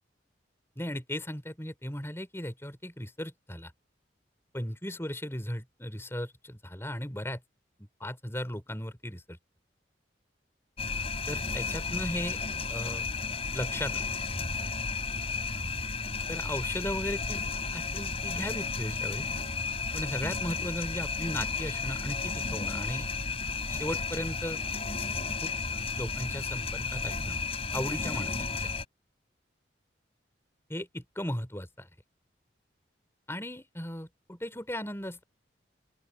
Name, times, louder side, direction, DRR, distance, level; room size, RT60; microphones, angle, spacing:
voice 1, 0.8-3.7 4.5-7.4 8.0-9.4 11.3-12.4 12.7-13.1 13.5-14.0 16.3-17.5 17.7-19.3 19.9-23.1 23.7-24.6 25.4-25.5 26.0-27.4 27.7-28.7 30.7-31.9 33.3-35.2, left 1 dB, 15° left, 4.4 m, -36 dB
sound 1, 10.8-28.8, left 4 dB, 30° left, 7.5 m, -33 dB
open air
head